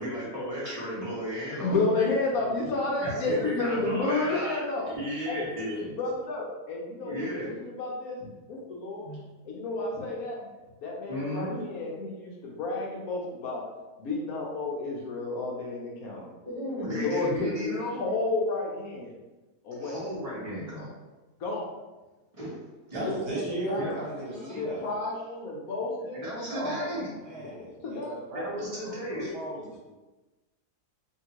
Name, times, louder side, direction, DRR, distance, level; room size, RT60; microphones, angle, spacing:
voice 1, 0.0-1.8 3.0-4.6 4.9-5.9 7.0-7.5 11.1-11.6 16.4-18.1 19.7-20.9 22.3-22.6 22.9-23.0 23.8-23.9 26.2-27.1 28.3-29.3, equal, 25° right, -8 dB, 0.9 m, -34 dB
voice 2, 1.6-4.9 5.3-5.5 6.0-9.1 9.4-10.4 10.8-12.3 12.6-13.6 14.0-16.2 16.8-17.7 18.0-19.1 19.6-19.9 21.4-21.7 23.0-26.2 27.4-27.5 27.8-28.1, left 3 dB, 70° left, -2 dB, 1.0 m, -31 dB
voice 3, 22.9-25.0 26.5-29.8, right 2 dB, 80° right, -5 dB, 1.5 m, -37 dB
2.8 x 2.7 x 2.9 m, 1.2 s
omnidirectional pair, 1.7 m